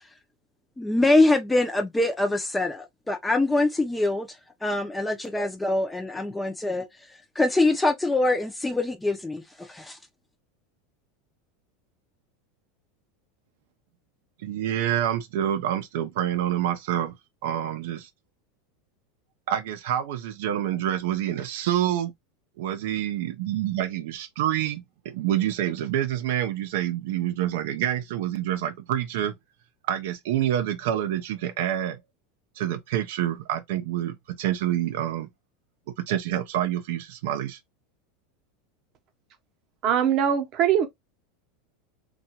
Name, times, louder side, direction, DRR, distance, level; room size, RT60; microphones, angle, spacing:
voice 1, 0.8-4.3 4.6-6.8 7.4-9.4 9.7-9.9, left 2 dB, 10° left, 0.5 m, -24 dB
voice 2, 14.4-17.2 17.4-18.1 19.5-22.1 22.6-29.4 29.9-32.0 32.6-35.3 36.0-37.6, right 11 dB, 75° right, 0.4 m, -27 dB
voice 3, 39.8-40.9, right 9 dB, 45° right, 0.7 m, -22 dB
2.7 x 2.2 x 2.8 m
supercardioid pair, 120°, 0 cm